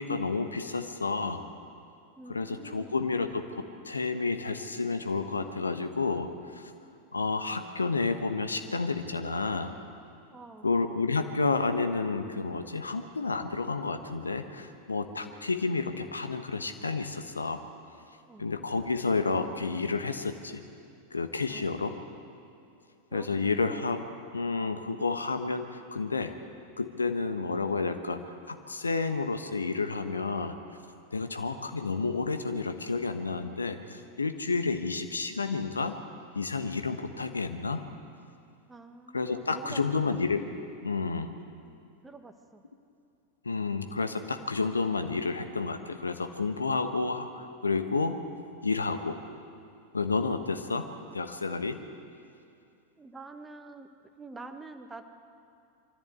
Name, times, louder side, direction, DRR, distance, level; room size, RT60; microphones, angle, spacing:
voice 1, 0.0-1.4 2.3-6.7 7.1-9.7 10.6-17.6 18.4-20.6 21.1-21.9 23.1-24.0 24.3-26.3 26.8-30.6 31.1-36.0 36.3-37.8 39.1-40.4 40.8-41.3 43.4-48.2 48.6-49.2 49.9-50.9 51.1-51.8, left 4 dB, 75° left, 8 dB, 1.2 m, -30 dB
voice 2, 2.2-3.0 10.3-10.7 18.3-18.5 21.5-22.2 22.6-22.7 23.1-23.8 38.7-39.8 41.6-42.6 53.0-53.9 54.2-55.1, right 3 dB, 10° right, 7 dB, 1.3 m, -47 dB
24.0 x 14.5 x 8.0 m, 2.5 s
figure-of-eight pair, 90°, 0 cm